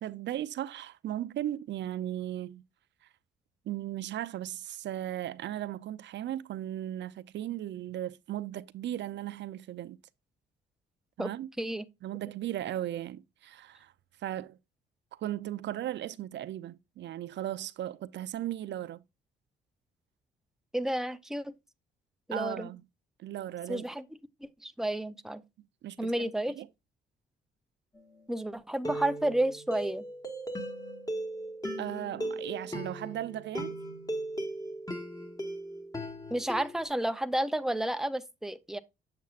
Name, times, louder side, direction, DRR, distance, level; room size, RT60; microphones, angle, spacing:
voice 1, 0.0-2.6 3.7-10.0 11.2-11.5 12.0-13.9 14.2-14.6 15.2-19.0 22.3-22.8 23.2-23.8 25.8-26.3 26.6-26.7 31.8-33.8, right 12 dB, 65° right, 0.5 m, -36 dB
voice 2, 20.7-21.5 22.3-22.7 23.7-24.0 24.4-25.4 26.0-26.6 28.3-30.0 36.3-38.8, right 1 dB, ahead, 0.7 m, -31 dB
sound 1, 27.9-28.2 28.8-36.9, right 1 dB, 20° left, 2.0 m, -38 dB
7.3 x 7.2 x 2.4 m
cardioid pair, 90°, 20 cm